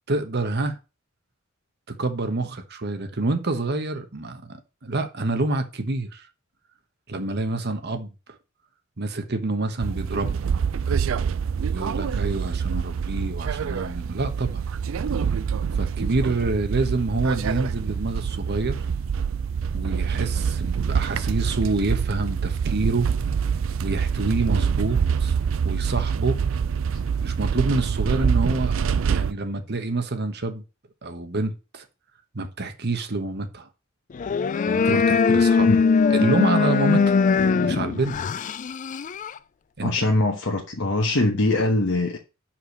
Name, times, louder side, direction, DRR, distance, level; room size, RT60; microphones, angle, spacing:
voice 1, 0.1-0.8 2.0-6.3 7.1-8.1 9.0-10.4 11.7-14.6 15.7-18.9 19.7-23.1 23.8-25.4 25.6-26.4 27.2-28.7 29.1-30.6 31.0-31.8 32.3-33.7 34.7-35.8 36.1-37.2 37.6-38.2 39.8-40.1, right 2 dB, 55° right, 1.2 m, -27 dB
sound 1, 9.8-29.3, right 6 dB, 70° right, 0.4 m, -25 dB
sound 2, 34.1-39.4, left 5 dB, 40° left, 0.3 m, -21 dB
voice 2, 39.8-42.2, left 2 dB, 60° left, 1.2 m, -22 dB
5.7 x 5.0 x 6.5 m
head